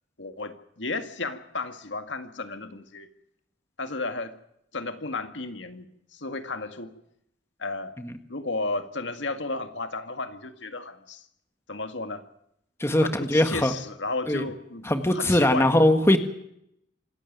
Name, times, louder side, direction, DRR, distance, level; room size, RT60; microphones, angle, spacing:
voice 1, 0.2-3.1 3.8-4.3 4.7-6.9 7.6-7.9 8.3-11.2 11.7-12.3 13.0-14.9 15.1-15.7, left 3 dB, 80° left, 8 dB, 2.0 m, -33 dB
voice 2, 12.8-13.7 14.3-14.4 14.8-16.2, left 1 dB, 15° left, 8 dB, 1.6 m, -21 dB
26.5 x 13.0 x 9.3 m, 0.76 s
head